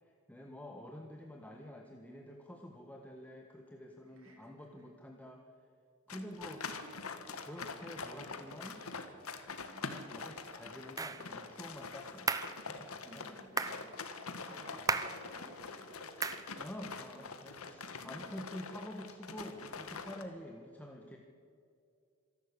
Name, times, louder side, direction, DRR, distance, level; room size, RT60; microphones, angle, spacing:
voice 1, 0.0-5.4 6.1-6.7 7.4-8.8 9.9-12.3 12.7-13.3 14.4-14.8 16.6-21.2, left 1 dB, 5° left, 1 dB, 1.5 m, -48 dB
voice 2, 4.2-4.5 6.1-6.5 6.8-6.9 9.6-9.8 13.1-13.9 14.5-16.3 17.8-18.2, equal, 70° right, -3 dB, 5.9 m, -55 dB
sound 1, 6.1-20.2, left 4 dB, 85° left, 1.8 m, -45 dB
sound 2, 11.0-11.2 12.3-12.6 13.6-13.8 14.9-15.2 16.2-16.5, right 3 dB, 15° right, 0.9 m, -34 dB
26.0 x 12.0 x 8.5 m, 2.3 s
head